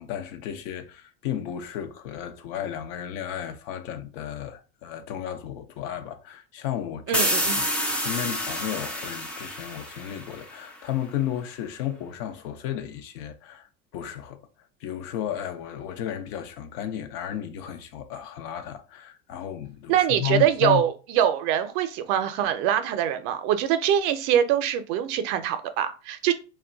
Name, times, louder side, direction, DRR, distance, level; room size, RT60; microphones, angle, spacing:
voice 1, 0.0-7.2 7.5-13.7 13.9-14.4 14.8-20.8, left 11 dB, 65° left, 0.6 m, -33 dB
sound 1, 7.1-10.7, equal, 5° left, 0.4 m, -28 dB
voice 2, 7.1-7.6 19.9-26.3, right 10 dB, 60° right, 0.5 m, -24 dB
2.2 x 2.1 x 3.7 m
supercardioid pair, 110°, 37 cm